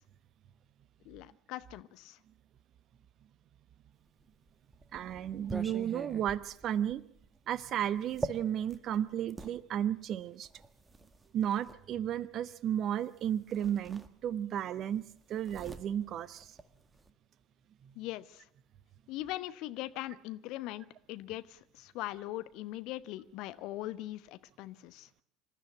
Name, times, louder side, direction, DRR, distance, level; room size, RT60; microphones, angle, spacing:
voice 1, 1.0-2.2 17.9-18.4 19.1-25.1, left 16 dB, 55° left, 14 dB, 1.0 m, -41 dB
sound 1, 4.2-9.6 10.4-11.8 13.0-13.2 13.5-14.6 14.9-17.1, right 2 dB, 15° right, 1.9 m, -44 dB
voice 2, 4.9-7.0 7.5-10.5 11.3-16.6 17.8-17.9, right 10 dB, 45° right, 17 dB, 1.0 m, -33 dB
26.5 x 13.5 x 8.4 m, 0.71 s
figure-of-eight pair, 65°, 0 cm